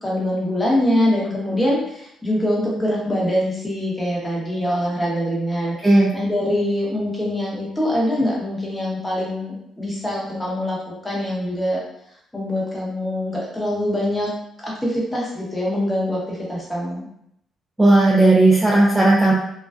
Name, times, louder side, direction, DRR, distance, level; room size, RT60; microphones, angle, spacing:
voice 1, 0.0-5.7 6.1-10.8 11.0-11.8 12.3-14.3 14.6-17.0, left 1 dB, 10° left, -5 dB, 0.9 m, -23 dB
voice 2, 17.8-19.3, right 2 dB, 10° right, -5 dB, 0.4 m, -14 dB
2.3 x 2.3 x 2.3 m, 0.75 s
cardioid pair, 90°, 0 cm